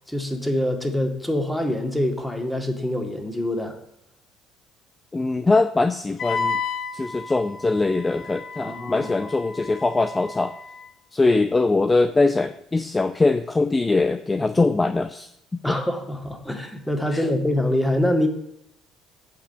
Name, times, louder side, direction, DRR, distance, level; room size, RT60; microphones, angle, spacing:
voice 1, 0.1-3.8 8.6-9.3 15.6-18.3, left 1 dB, 5° left, 4 dB, 2.3 m, -25 dB
voice 2, 5.1-6.6 6.9-10.5 11.1-15.8 17.1-17.3, left 3 dB, 20° left, 10 dB, 0.6 m, -22 dB
Wind instrument woodwind instrument, 6.2-10.8, left 5 dB, 55° left, 1.3 m, -32 dB
8.6 x 5.8 x 6.8 m, 0.77 s
hypercardioid pair, 65°, 0 cm